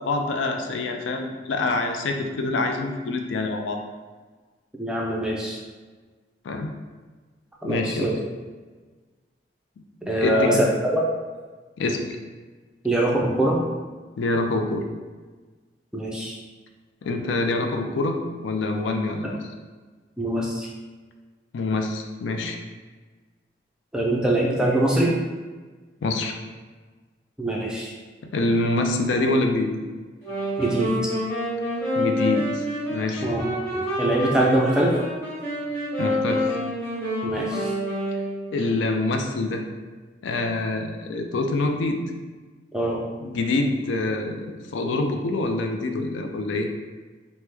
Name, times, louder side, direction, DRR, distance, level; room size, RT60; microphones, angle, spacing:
voice 1, 0.0-3.8 6.4-6.7 7.6-8.1 10.2-10.6 11.8-12.2 14.2-14.8 17.0-18.2 18.4-19.4 21.5-22.6 26.0-26.4 28.3-29.7 32.0-33.3 36.0-36.6 38.5-39.6 40.2-42.0 43.2-46.7, left 2 dB, 90° left, 4 dB, 0.4 m, -25 dB
voice 2, 4.8-5.6 7.6-8.2 10.1-11.0 12.8-13.6 15.9-16.3 19.2-19.3 20.2-20.7 23.9-25.1 27.4-27.9 30.6-30.9 33.2-33.5 33.7-34.9 37.2-37.7 42.7-43.0, right 1 dB, 5° right, -3 dB, 0.3 m, -23 dB
sound 1, 30.2-38.7, equal, 15° left, 1.0 m, -27 dB
3.0 x 2.1 x 3.3 m, 1.4 s
head